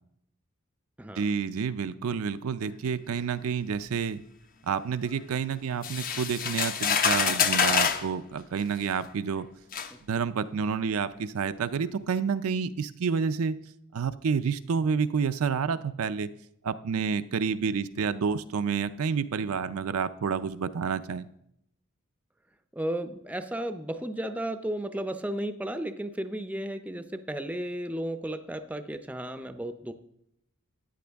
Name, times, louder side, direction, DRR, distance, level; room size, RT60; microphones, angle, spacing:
voice 1, 1.2-4.2 4.6-9.5 10.1-13.6 13.9-16.3 16.6-21.3, right 6 dB, 70° right, 11 dB, 0.4 m, -29 dB
sound 1, 5.8-8.1 9.0-9.1 9.7-9.9, left 7 dB, 40° left, 0.7 m, -26 dB
voice 2, 22.7-29.9, right 1 dB, 5° right, 9 dB, 0.5 m, -34 dB
13.5 x 9.3 x 3.5 m, 0.75 s
head